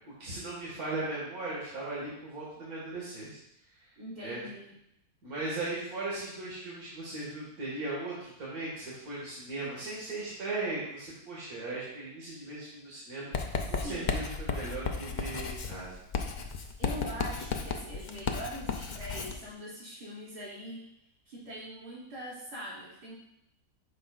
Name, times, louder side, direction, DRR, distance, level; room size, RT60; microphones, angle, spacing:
voice 1, 0.0-3.4 4.2-4.4 5.2-16.0, right 2 dB, 70° right, -7 dB, 2.4 m, -38 dB
voice 2, 4.0-4.7 13.5-14.2 16.8-20.8 21.3-23.1, equal, 90° right, -8 dB, 3.4 m, -42 dB
Writing, 13.3-19.4, left 5 dB, 70° left, 0.4 m, -34 dB
9.4 x 6.5 x 2.5 m, 0.80 s
omnidirectional pair, 1.6 m